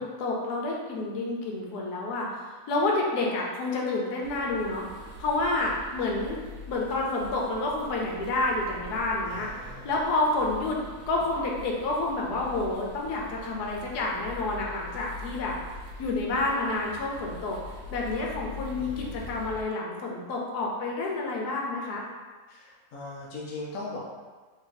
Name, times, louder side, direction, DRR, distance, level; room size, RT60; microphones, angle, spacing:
voice 1, 0.0-2.4 2.7-4.9 5.2-6.4 6.7-9.5 9.8-10.8 11.1-15.5 16.0-17.6 17.9-22.0, left 2 dB, 85° left, -1 dB, 1.3 m, -29 dB
sound 1, 4.2-19.6, left 2 dB, 85° right, 1.1 m, -43 dB
voice 2, 9.3-9.9 18.8-19.3 22.5-24.0, left 2 dB, 65° left, -5 dB, 0.9 m, -40 dB
3.2 x 2.7 x 3.9 m, 1.4 s
omnidirectional pair, 1.6 m